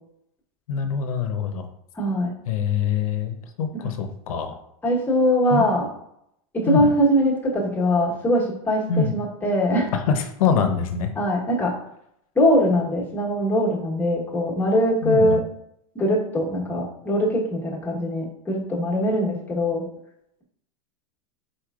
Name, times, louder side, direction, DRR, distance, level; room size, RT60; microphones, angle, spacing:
voice 1, 0.7-1.7 2.5-4.6 5.5-5.6 6.7-6.9 8.9-9.1 9.9-11.1 15.0-15.4, left 6 dB, 85° left, 6 dB, 0.7 m, -24 dB
voice 2, 1.9-2.3 3.7-3.8 4.8-5.9 6.5-9.9 11.1-11.7 12.3-15.4 15.9-19.8, equal, 10° left, -4 dB, 1.1 m, -22 dB
4.8 x 4.2 x 2.4 m, 0.77 s
supercardioid pair, 135°, 17 cm